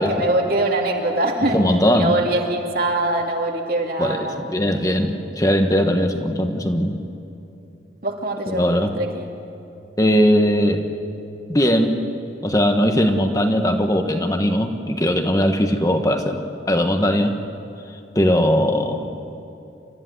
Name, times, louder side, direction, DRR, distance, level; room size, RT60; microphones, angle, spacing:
voice 1, 0.0-1.6 1.9-4.5 8.0-9.3, right 1 dB, 50° right, 1 dB, 2.6 m, -23 dB
voice 2, 1.5-2.1 4.0-7.0 8.5-8.9 10.0-10.8 11.5-12.0 12.4-17.4 18.1-19.1, equal, 20° left, 5 dB, 1.4 m, -19 dB
28.0 x 14.0 x 9.6 m, 2.7 s
head